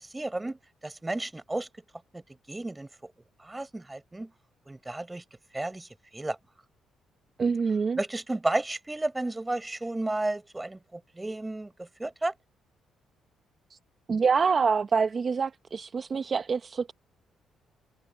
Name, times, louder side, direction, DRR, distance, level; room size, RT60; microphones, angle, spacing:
voice 1, 0.0-1.7 2.1-2.2 2.5-3.1 3.4-4.3 4.7-5.2 5.5-5.9 6.1-6.4 7.9-12.3, right 2 dB, 15° right, 5.1 m, -32 dB
voice 2, 7.4-8.0 14.1-16.9, right 5 dB, 40° right, 0.8 m, -26 dB
cardioid pair, 90°, 0 cm